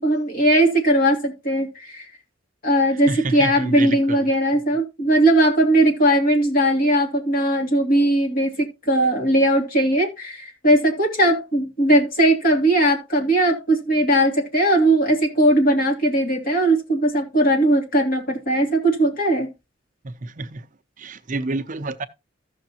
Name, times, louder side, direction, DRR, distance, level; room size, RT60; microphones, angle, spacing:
voice 1, 0.0-2.1 2.6-19.5, right 1 dB, 45° left, 2.8 m, -19 dB
voice 2, 3.1-4.3 20.0-20.6 21.0-22.1, right 3 dB, 40° right, 0.7 m, -29 dB
14.5 x 6.6 x 2.8 m
head